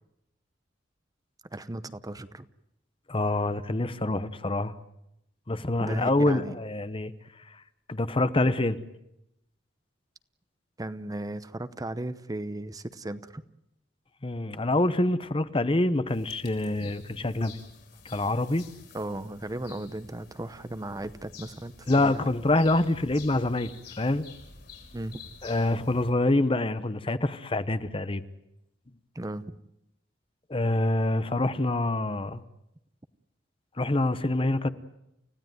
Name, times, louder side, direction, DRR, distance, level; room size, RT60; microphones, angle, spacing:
voice 1, 1.5-2.5 5.8-6.5 10.8-13.4 18.9-22.2 24.9-25.2 29.1-29.6, right 1 dB, 20° right, 0.8 m, -36 dB
voice 2, 3.1-4.7 5.5-7.1 7.9-8.8 14.2-17.6 18.0-18.6 21.9-24.3 25.4-28.2 30.5-32.4 33.8-34.7, left 2 dB, 30° left, 1.0 m, -26 dB
sound 1, 16.1-26.1, left 4 dB, 60° left, 5.5 m, -49 dB
30.0 x 16.5 x 9.3 m
head